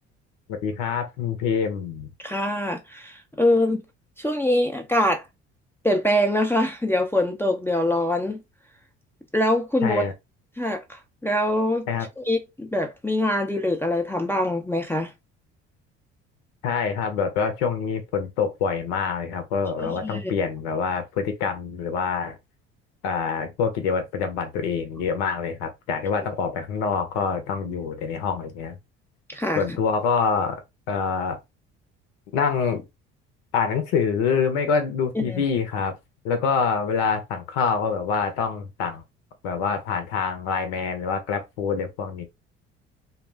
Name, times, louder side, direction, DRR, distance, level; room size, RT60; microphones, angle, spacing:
voice 1, 0.6-2.1 9.8-10.1 11.9-12.1 16.6-22.4 23.0-28.7 29.5-30.6 30.9-31.4 32.3-32.8 33.5-36.0 36.2-39.0 39.4-42.2, left 6 dB, 75° left, 0.7 m, -26 dB
voice 2, 2.2-3.8 4.2-5.2 5.8-8.4 9.3-10.1 10.6-11.9 12.2-15.1 19.8-20.2 29.3-29.6 35.2-35.4, left 1 dB, 5° left, 0.5 m, -24 dB
2.4 x 2.0 x 3.3 m
hypercardioid pair, 55°, 35 cm